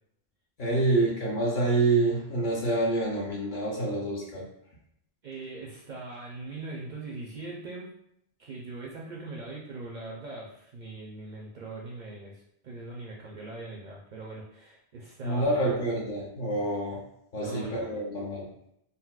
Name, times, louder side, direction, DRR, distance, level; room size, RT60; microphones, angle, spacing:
voice 1, 0.6-4.5 15.2-17.0 17.3-18.5, right 2 dB, 55° left, -2 dB, 0.7 m, -27 dB
voice 2, 5.2-7.9 8.4-15.8 17.4-18.0, right 2 dB, 55° right, -3 dB, 0.5 m, -41 dB
4.1 x 2.0 x 2.3 m, 0.76 s
omnidirectional pair, 1.1 m